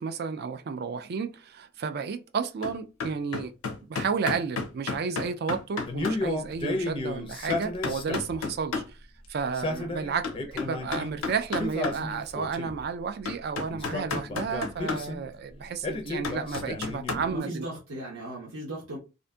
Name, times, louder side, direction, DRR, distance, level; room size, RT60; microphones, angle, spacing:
voice 1, 0.0-3.5 3.9-8.8 9.3-17.6, right 5 dB, 50° right, 0.3 m, -32 dB
sound 1, 2.6-2.7 3.0-6.2 6.7-6.8 7.5-8.9 10.2-12.0 12.6-12.7 13.3-15.0 16.2-17.1, left 4 dB, 85° left, 0.5 m, -32 dB
Male speech man speaking, 5.9-8.4 9.4-11.1 11.6-12.8 13.7-15.2 15.8-17.3, left 2 dB, 25° left, 0.5 m, -33 dB
voice 2, 17.1-19.0, right 1 dB, 80° right, 0.8 m, -37 dB
2.6 x 2.5 x 2.2 m
head